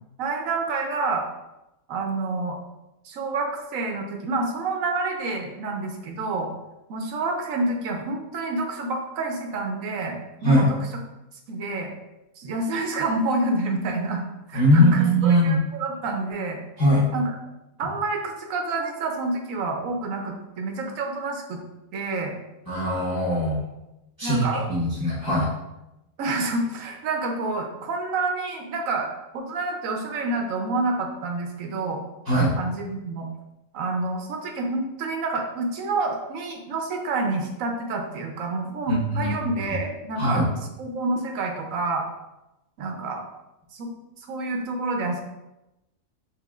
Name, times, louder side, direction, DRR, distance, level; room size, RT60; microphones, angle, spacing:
voice 1, 0.2-1.2 1.9-2.6 3.0-6.5 6.9-10.8 11.5-11.9 12.4-14.2 14.5-16.6 17.1-17.3 17.8-21.6 21.9-22.4 24.2-24.6 26.2-29.1 29.3-32.0 32.6-33.3 33.7-40.4 40.8-42.1 42.8-43.2 43.7-43.9 44.3-45.2, right 3 dB, 70° right, 3 dB, 1.0 m, -28 dB
voice 2, 14.5-15.6 16.8-17.1 22.7-23.6 24.2-25.5 32.3-32.6 38.9-39.3 40.2-40.4, equal, 15° left, -8 dB, 1.0 m, -20 dB
6.0 x 3.0 x 2.4 m, 0.94 s
omnidirectional pair, 1.5 m